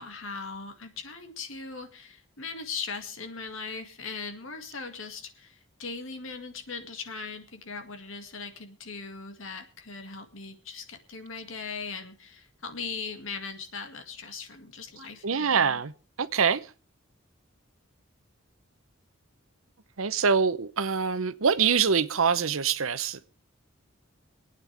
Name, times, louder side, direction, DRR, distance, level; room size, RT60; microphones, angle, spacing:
voice 1, 0.0-15.8, left 4 dB, 75° left, 2.1 m, -39 dB
voice 2, 15.2-15.9 16.2-16.7 20.0-23.2, right 6 dB, 85° right, 0.8 m, -24 dB
26.5 x 9.0 x 3.4 m
head